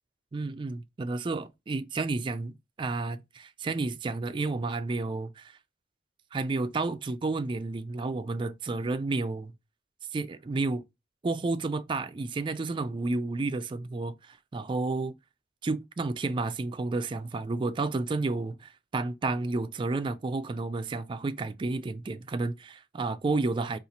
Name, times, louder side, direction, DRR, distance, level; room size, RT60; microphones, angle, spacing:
voice 1, 0.3-2.5 2.8-5.6 6.3-9.5 10.1-10.8 11.2-15.1 15.6-23.8, right 3 dB, 25° right, 0.3 m, -31 dB
2.8 x 2.4 x 3.8 m
head